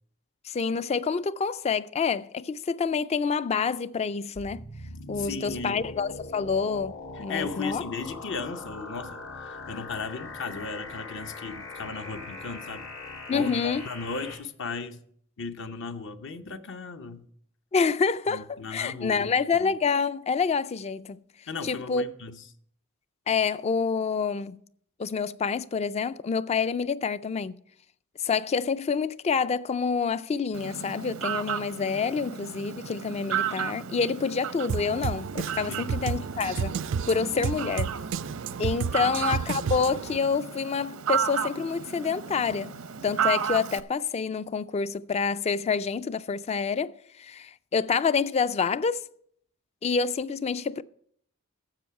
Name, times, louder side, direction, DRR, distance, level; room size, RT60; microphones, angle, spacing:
voice 1, 0.5-4.6 5.1-6.9 7.2-7.8 13.3-13.8 17.7-21.2 21.6-22.0 23.3-24.6 25.0-27.6 28.2-36.8 37.1-37.9 38.6-42.8 43.0-49.0 49.8-50.8, left 5 dB, 30° left, 0.3 m, -27 dB
sound 1, 4.4-14.4, left 2 dB, 85° left, 2.4 m, -41 dB
voice 2, 5.2-5.8 7.2-12.8 13.3-15.0 15.4-17.2 18.3-19.3 19.6-19.7 21.5-22.4 35.7-36.0 39.0-39.1, left 4 dB, 60° left, 0.8 m, -36 dB
Fowl, 30.5-43.8, right 8 dB, 85° right, 0.7 m, -33 dB
Drum kit, 34.7-40.2, right 6 dB, 65° right, 0.3 m, -32 dB
12.5 x 7.7 x 4.7 m
head